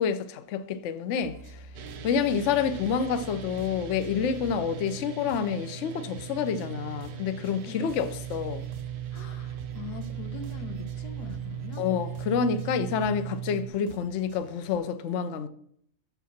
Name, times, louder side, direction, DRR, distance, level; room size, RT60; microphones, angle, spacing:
voice 1, 0.0-1.6 2.0-8.7 11.8-15.5, left 7 dB, 60° left, 0.8 m, -28 dB
sound 1, 1.2-14.8, equal, 45° right, 1.0 m, -46 dB
sound 2, 1.7-13.7, right 11 dB, 75° right, 1.3 m, -38 dB
voice 2, 2.1-2.6 7.6-7.8 9.1-11.9, left 7 dB, 85° left, 1.4 m, -43 dB
7.3 x 5.6 x 5.7 m
omnidirectional pair, 1.7 m